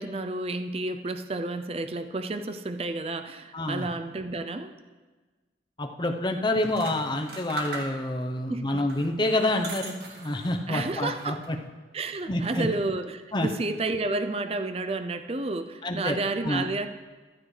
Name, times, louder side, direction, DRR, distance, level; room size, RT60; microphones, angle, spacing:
voice 1, 0.0-4.7 8.5-8.8 10.7-11.4 11.9-16.9, right 2 dB, 35° right, 9 dB, 0.5 m, -31 dB
voice 2, 3.5-3.9 5.8-11.6 12.3-12.7 13.3-13.5 15.8-16.2 16.4-16.7, left 1 dB, 25° left, 4 dB, 0.9 m, -28 dB
sound 1, 6.5-8.3 8.8-10.6 11.0-11.7, right 3 dB, 65° right, 1.8 m, -40 dB
14.5 x 12.5 x 3.3 m, 1.3 s
head